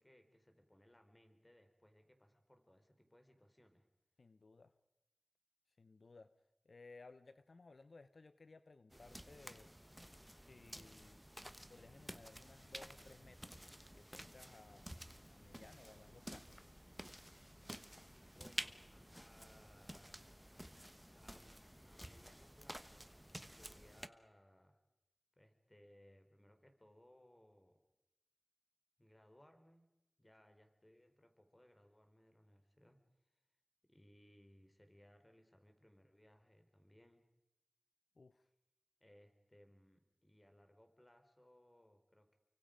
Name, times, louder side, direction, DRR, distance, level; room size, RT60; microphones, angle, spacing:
voice 1, 0.0-3.9 18.3-20.2 21.1-23.1 23.4-24.8 25.4-27.8 29.0-29.9 30.2-33.0 33.8-37.2 39.0-42.4, equal, 25° left, 6 dB, 3.8 m, -67 dB
voice 2, 4.2-4.7 5.8-6.3 6.6-9.7 10.3-11.2 11.7-13.5 13.9-16.6 38.2-38.5, left 3 dB, 80° left, 12 dB, 0.8 m, -60 dB
sound 1, 8.9-24.1, equal, 5° right, 1.1 m, -52 dB
29.5 x 24.0 x 5.1 m, 0.95 s
cardioid pair, 40°, 0 cm